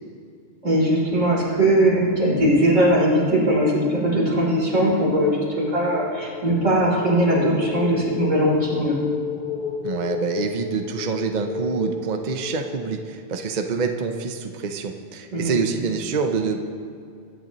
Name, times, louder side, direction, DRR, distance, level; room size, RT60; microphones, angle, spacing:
voice 1, 0.6-9.0 15.3-15.6, right 1 dB, 85° right, -5 dB, 3.9 m, -20 dB
sound 1, 5.3-13.7, left 5 dB, 50° left, 0.9 m, -33 dB
voice 2, 9.8-16.7, right 5 dB, 40° right, 5 dB, 0.8 m, -26 dB
21.0 x 10.5 x 3.0 m, 2.4 s
omnidirectional pair, 1.3 m